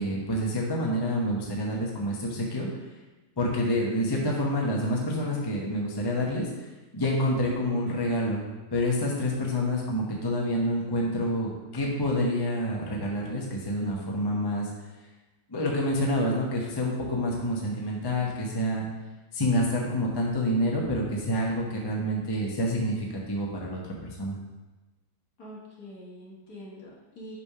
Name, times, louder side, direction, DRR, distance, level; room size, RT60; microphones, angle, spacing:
voice 1, 0.0-2.7 3.4-6.5 6.9-8.4 8.7-14.7 15.5-18.8 19.3-24.4, equal, 20° left, -2 dB, 0.6 m, -28 dB
voice 2, 25.4-27.4, equal, 65° left, -5 dB, 2.0 m, -45 dB
5.4 x 3.4 x 5.5 m, 1.1 s
omnidirectional pair, 1.8 m